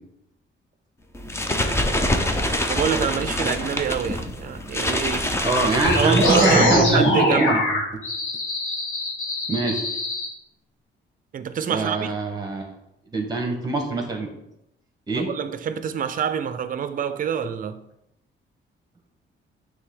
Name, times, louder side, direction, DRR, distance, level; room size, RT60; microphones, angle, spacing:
sound 1, 1.1-7.1, left 1 dB, 10° left, 0.6 m, -26 dB
voice 1, 2.7-5.5 5.8-7.6 11.3-12.1 15.1-17.8, right 7 dB, 40° right, 0.5 m, -26 dB
voice 2, 5.4-7.6 9.5-9.8 11.7-12.7 13.1-14.3 15.1-15.3, right 3 dB, 20° right, 1.4 m, -24 dB
sound 2, 5.8-10.3, left 1 dB, 70° left, 2.1 m, -22 dB
9.4 x 3.4 x 3.8 m
cardioid pair, 125°, 21 cm